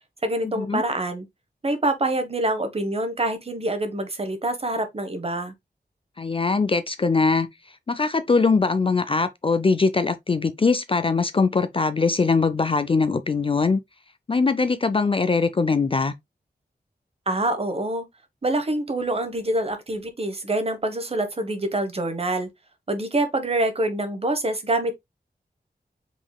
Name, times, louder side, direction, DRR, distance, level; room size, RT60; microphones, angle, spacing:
voice 1, 0.2-1.3 1.6-5.5 17.3-18.1 18.4-22.5 22.9-25.0, right 1 dB, 35° right, 1.0 m, -26 dB
voice 2, 6.2-7.5 7.9-13.8 14.3-16.1, left 4 dB, 30° left, 0.4 m, -21 dB
5.0 x 3.7 x 2.2 m
wide cardioid pair, 110°, 17 cm